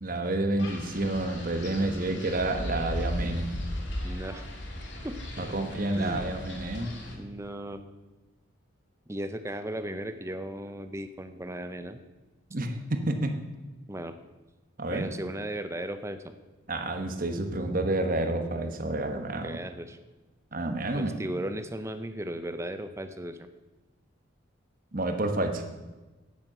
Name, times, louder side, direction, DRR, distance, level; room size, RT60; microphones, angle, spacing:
voice 1, 0.0-3.5 5.4-7.0 12.5-13.4 14.8-15.1 16.7-19.6 20.5-21.1 24.9-25.6, right 2 dB, 45° right, 6 dB, 1.2 m, -29 dB
Wind, 0.6-7.1, left 1 dB, 60° left, 2.3 m, -36 dB
voice 2, 4.0-4.5 5.0-5.5 6.0-6.3 7.1-7.8 9.1-12.0 13.9-14.1 14.9-16.4 19.4-20.0 20.9-23.5, right 1 dB, 15° right, 10 dB, 0.5 m, -36 dB
9.2 x 9.0 x 7.9 m, 1.2 s
head